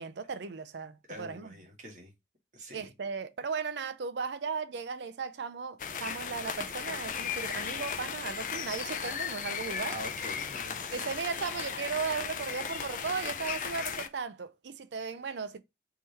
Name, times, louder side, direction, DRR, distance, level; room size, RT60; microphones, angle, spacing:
voice 1, 0.0-1.5 2.7-10.0 10.9-15.6, right 5 dB, 80° right, 0.5 m, -36 dB
voice 2, 1.1-2.1 2.5-2.9 9.8-10.8 12.0-12.1, right 1 dB, 45° right, 1.6 m, -44 dB
sound 1, 5.8-14.1, left 7 dB, 45° left, 0.5 m, -36 dB
3.6 x 3.4 x 4.1 m
head